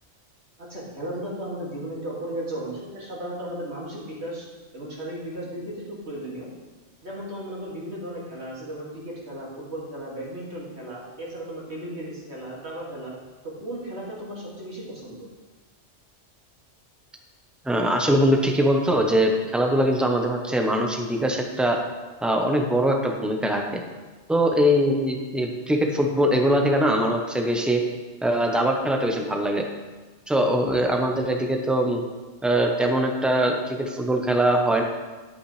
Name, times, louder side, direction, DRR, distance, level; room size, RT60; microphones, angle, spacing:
voice 1, 0.6-4.5 4.7-6.5 7.0-13.1 13.4-15.3, right 1 dB, 65° right, -6 dB, 2.7 m, -35 dB
voice 2, 17.6-21.8 22.2-23.8 24.3-27.8 28.2-29.7 30.3-32.0 32.4-34.8, equal, ahead, 2 dB, 0.8 m, -22 dB
11.0 x 8.7 x 3.3 m, 1.3 s
omnidirectional pair, 1.2 m